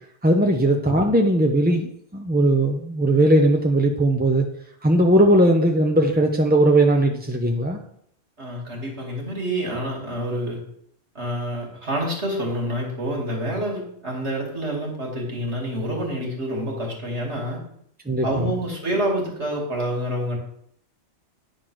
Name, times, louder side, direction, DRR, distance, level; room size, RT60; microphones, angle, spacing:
voice 1, 0.2-4.5 4.8-7.8 18.1-18.6, right 1 dB, 10° right, 2 dB, 0.4 m, -19 dB
voice 2, 8.4-10.6 11.1-17.6 18.2-20.4, equal, 70° right, 0 dB, 2.7 m, -27 dB
9.6 x 4.5 x 6.2 m, 0.69 s
omnidirectional pair, 1.2 m